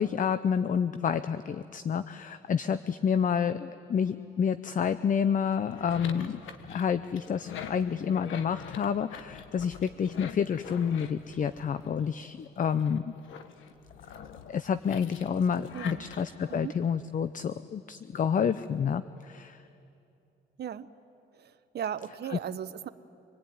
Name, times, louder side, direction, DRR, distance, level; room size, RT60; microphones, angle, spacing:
voice 1, 0.0-6.4 6.7-13.0 14.5-19.6, left 7 dB, 40° left, 13 dB, 0.7 m, -29 dB
sound 1, 5.5-12.2 12.7-16.6, left 7 dB, 80° left, 1.5 m, -45 dB
voice 2, 15.7-16.1 16.5-16.7 20.6-20.9 21.4-22.9, right 9 dB, 55° right, 11 dB, 1.0 m, -37 dB
26.0 x 20.5 x 9.5 m, 2.7 s
cardioid pair, 90°, 20 cm